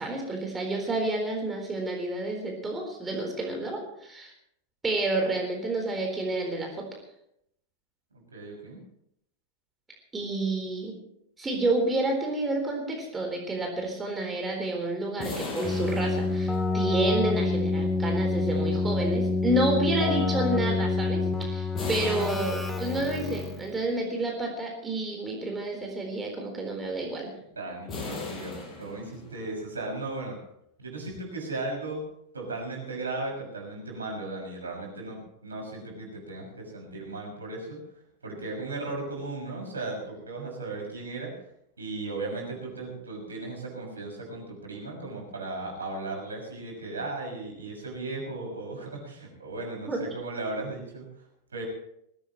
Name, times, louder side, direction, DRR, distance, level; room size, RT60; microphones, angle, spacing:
voice 1, 0.0-4.3 4.8-6.7 10.1-10.9 11.4-27.3 49.9-50.0, right 2 dB, 15° right, 1 dB, 4.1 m, -29 dB
voice 2, 8.3-8.8 27.6-30.4 30.8-32.0 32.3-37.8 38.2-41.3 41.8-51.1 51.5-51.6, right 2 dB, 75° right, 0 dB, 6.4 m, -36 dB
sound 1, 15.2-17.1 21.8-23.4 27.9-29.5, left 3 dB, 25° left, 5.8 m, -38 dB
Keyboard (musical), 15.6-23.7, left 3 dB, 10° left, 1.8 m, -27 dB
20.5 x 17.0 x 3.1 m, 0.75 s
figure-of-eight pair, 90°, 0 cm